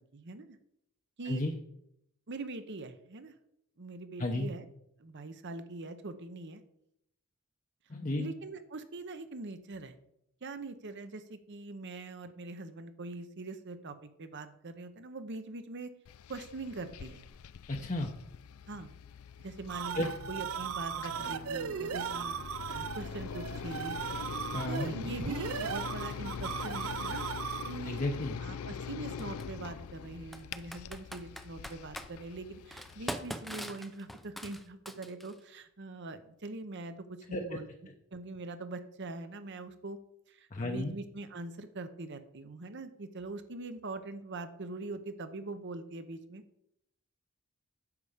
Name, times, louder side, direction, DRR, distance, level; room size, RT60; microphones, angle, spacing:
voice 1, 0.1-0.6 1.2-1.4 2.3-3.3 3.8-4.7 5.0-6.6 8.2-9.9 10.4-15.9 16.3-17.2 18.7-18.9 19.4-24.0 24.3-27.3 27.7-28.0 28.4-37.7 38.1-40.0 40.3-46.4, right 3 dB, 55° right, 10 dB, 0.9 m, -42 dB
voice 2, 7.9-8.3 17.7-18.1 19.9-20.1 24.5-24.9 27.9-28.4 37.3-37.4 40.5-40.9, left 2 dB, 35° left, 2 dB, 0.8 m, -33 dB
sound 1, 16.1-33.1, left 7 dB, 90° left, 0.4 m, -43 dB
sound 2, 19.4-27.9, right 7 dB, 80° right, 0.5 m, -37 dB
Computer keyboard, 27.5-27.6 29.2-29.4 30.3-32.1 32.7-35.4, equal, ahead, 0.6 m, -42 dB
9.6 x 6.8 x 5.0 m, 0.78 s
head